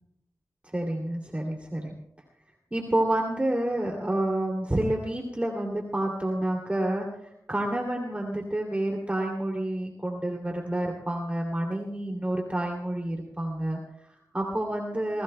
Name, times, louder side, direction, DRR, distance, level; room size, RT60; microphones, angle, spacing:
voice 1, 0.7-1.9 2.7-15.2, right 1 dB, 20° right, 0 dB, 2.6 m, -29 dB
27.5 x 21.0 x 2.2 m, 0.82 s
wide cardioid pair, 85°, 7 cm